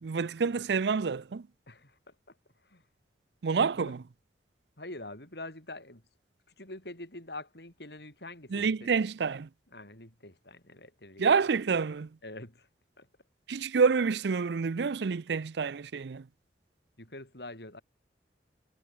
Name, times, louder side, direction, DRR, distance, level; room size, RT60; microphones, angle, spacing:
voice 1, 0.0-1.5 3.4-4.0 8.5-9.5 11.2-12.1 13.5-16.3, right 5 dB, 70° right, 0.5 m, -28 dB
voice 2, 1.7-2.4 2.6-2.8 3.8-4.0 4.8-6.0 6.6-9.0 9.7-11.5 12.2-12.7 13.0-13.1 17.0-17.8, left 2 dB, 65° left, 7.6 m, -45 dB
head